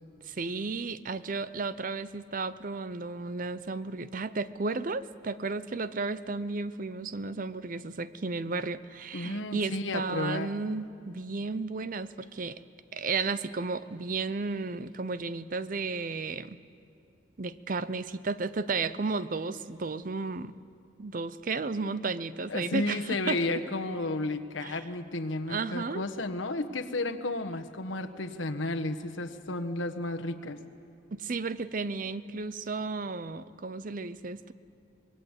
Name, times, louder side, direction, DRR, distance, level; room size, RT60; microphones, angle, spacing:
voice 1, 0.3-12.6 12.9-16.6 17.4-20.5 21.0-23.4 24.6-24.8 25.5-26.0 31.1-34.5, right 4 dB, 45° right, 15 dB, 0.6 m, -33 dB
voice 2, 9.1-10.5 22.5-30.6, left 2 dB, 85° left, 7 dB, 1.3 m, -32 dB
25.5 x 21.0 x 8.2 m, 2.6 s
head